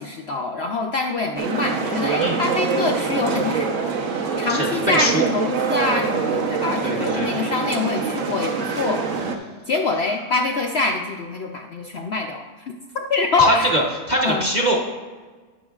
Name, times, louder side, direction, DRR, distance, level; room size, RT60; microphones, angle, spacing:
voice 1, 0.0-9.0 9.7-12.5 12.9-13.7 14.2-14.5, left 3 dB, 70° left, 3 dB, 0.6 m, -25 dB
sound 1, 1.4-9.4, right 5 dB, 55° right, 1.2 m, -24 dB
voice 2, 4.5-5.2 6.8-7.3 13.4-13.8 14.1-14.8, right 1 dB, 35° right, -2 dB, 0.9 m, -22 dB
18.5 x 6.2 x 2.4 m, 1.4 s
omnidirectional pair, 1.7 m